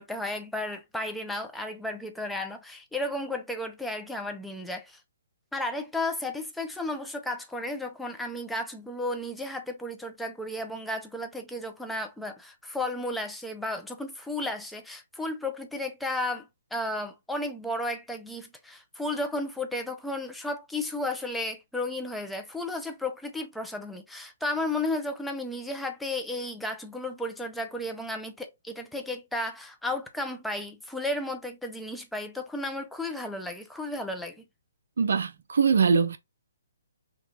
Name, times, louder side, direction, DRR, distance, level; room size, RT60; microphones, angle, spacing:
voice 1, 0.0-5.0 5.5-34.4, left 1 dB, 5° left, 0.5 m, -33 dB
voice 2, 35.0-36.2, right 5 dB, 70° right, 0.5 m, -22 dB
3.6 x 2.3 x 2.6 m
hypercardioid pair, 145°, 0 cm